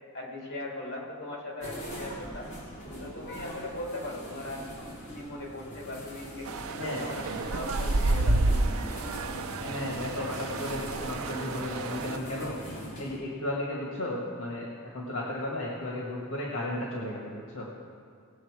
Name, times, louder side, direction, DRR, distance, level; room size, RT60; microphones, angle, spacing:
voice 1, 0.1-2.5 3.0-8.6, left 1 dB, 55° left, -2 dB, 2.7 m, -39 dB
sound 1, 1.6-13.2, equal, 35° left, 3.4 m, -42 dB
Maharaj Market Krabi Thailand, 6.5-12.2, right 2 dB, 70° right, 0.5 m, -30 dB
voice 2, 6.8-7.1 9.6-12.5 13.0-14.7 14.9-17.7, left 1 dB, 75° left, -3 dB, 1.6 m, -34 dB
18.5 x 7.2 x 4.8 m, 2.2 s
head